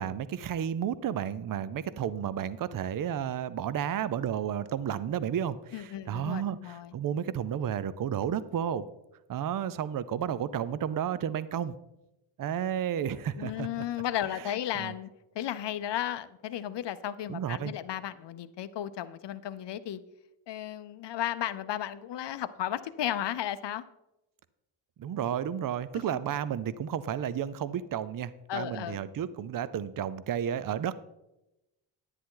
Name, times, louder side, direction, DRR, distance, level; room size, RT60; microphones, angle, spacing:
voice 1, 0.0-8.9 9.3-11.7 12.4-13.7 14.8-14.9 17.3-17.7 25.0-30.9, right 9 dB, 45° right, 17 dB, 0.6 m, -32 dB
voice 2, 5.7-6.9 13.4-15.1 15.3-20.0 20.5-23.8 28.5-29.0, left 11 dB, 60° left, 13 dB, 0.7 m, -34 dB
10.5 x 9.9 x 3.8 m, 0.93 s
cardioid pair, 110°, 49 cm